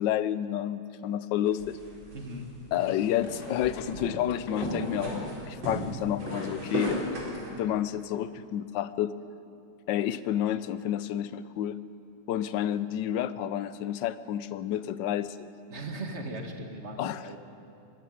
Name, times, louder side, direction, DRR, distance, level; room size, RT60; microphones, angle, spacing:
voice 1, 0.0-1.8 2.7-7.3 7.6-9.1 9.9-11.8 12.3-15.5 17.0-17.3, left 11 dB, 75° left, 14 dB, 1.3 m, -30 dB
sound 1, 1.5-7.5, right 1 dB, 90° right, 4.8 m, -36 dB
voice 2, 2.1-2.5 15.7-17.4, right 1 dB, 35° right, 3 dB, 2.2 m, -38 dB
24.0 x 12.5 x 9.4 m, 2.7 s
omnidirectional pair, 2.1 m